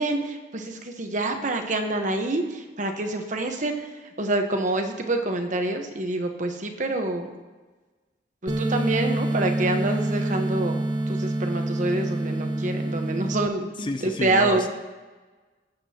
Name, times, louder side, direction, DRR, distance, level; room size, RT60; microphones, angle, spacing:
voice 1, 0.0-7.4 8.4-14.7, right 2 dB, 45° right, 4 dB, 1.1 m, -27 dB
sound 1, 8.5-13.5, right 1 dB, 25° right, 0.8 m, -26 dB
voice 2, 13.8-14.7, left 2 dB, 30° left, 8 dB, 0.6 m, -30 dB
18.5 x 7.8 x 2.9 m, 1.3 s
head